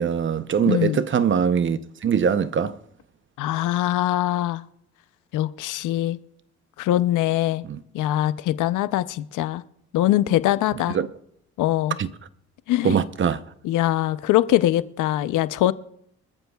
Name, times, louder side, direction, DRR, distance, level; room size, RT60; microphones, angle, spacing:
voice 1, 0.0-2.7 7.7-7.8 10.9-11.1 12.0-12.1 12.8-13.4, right 7 dB, 40° right, 0.7 m, -22 dB
voice 2, 0.6-1.0 3.4-4.6 5.3-6.2 6.8-7.6 7.9-9.6 9.9-11.0 11.6-12.0 12.7-13.0 13.6-15.7, left 14 dB, 85° left, 0.6 m, -22 dB
25.0 x 13.5 x 2.3 m
cardioid pair, 90°, 30 cm